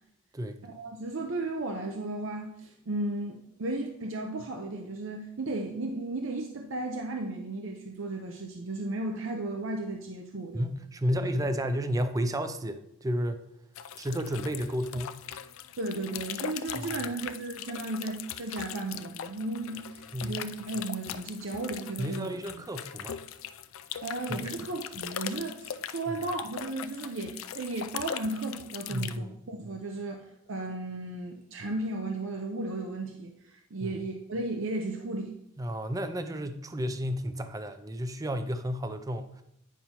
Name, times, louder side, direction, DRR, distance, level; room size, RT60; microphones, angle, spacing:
voice 1, 0.6-10.6 11.2-11.3 15.8-22.3 24.0-35.4, right 2 dB, 60° right, 3 dB, 0.6 m, -35 dB
voice 2, 10.5-13.4 14.0-15.2 16.8-16.9 20.1-20.4 22.0-23.2 24.3-24.4 28.9-29.3 33.8-33.9 35.6-39.4, equal, 15° right, 9 dB, 0.4 m, -32 dB
sound 1, 13.7-29.2, left 9 dB, 70° left, 0.4 m, -40 dB
9.2 x 5.5 x 2.9 m, 0.78 s
head